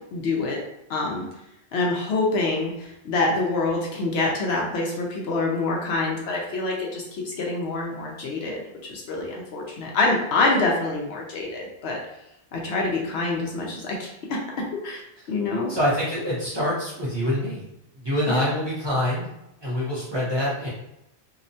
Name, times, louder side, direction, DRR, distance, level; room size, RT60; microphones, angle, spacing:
voice 1, 0.1-0.6 0.9-1.3 1.7-12.0 12.5-15.0 15.3-15.7 18.2-18.4, left 3 dB, 70° left, -1 dB, 0.8 m, -26 dB
voice 2, 15.7-17.7 18.0-19.3 19.6-20.7, equal, 25° right, -9 dB, 0.7 m, -25 dB
2.8 x 2.1 x 2.6 m, 0.85 s
omnidirectional pair, 1.2 m